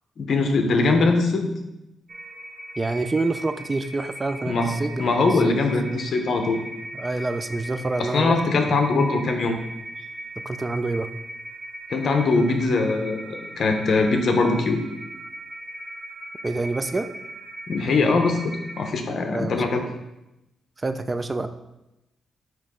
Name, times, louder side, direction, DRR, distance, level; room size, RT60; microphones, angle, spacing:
voice 1, 0.2-1.5 4.4-6.6 8.0-9.6 11.9-14.8 17.7-19.8, left 3 dB, 60° left, 4 dB, 0.9 m, -22 dB
sound 1, 2.1-18.8, right 1 dB, 40° right, 0.8 m, -39 dB
voice 2, 2.8-5.6 5.9-6.0 6.9-8.6 10.4-11.1 16.4-17.1 19.3-19.6 20.8-21.5, right 2 dB, 25° right, 10 dB, 0.4 m, -27 dB
9.1 x 3.0 x 3.7 m, 0.93 s
cardioid pair, 90°, 0 cm